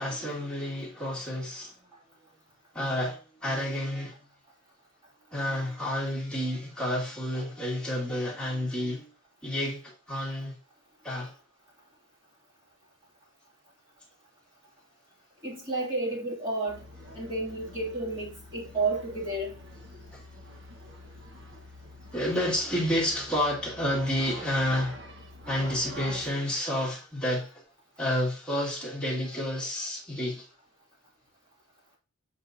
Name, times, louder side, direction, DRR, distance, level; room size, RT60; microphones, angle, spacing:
voice 1, 0.0-1.8 2.7-4.2 5.3-9.1 9.4-10.6 11.0-11.3 20.1-20.3 22.1-25.1 25.4-27.6 28.0-30.5, left 1 dB, 5° left, 2.4 m, -30 dB
voice 2, 15.4-16.8 17.1-19.5, right 2 dB, 25° right, 2.7 m, -31 dB
sound 1, 16.7-26.3, equal, 55° right, 1.4 m, -46 dB
8.3 x 4.8 x 2.8 m
head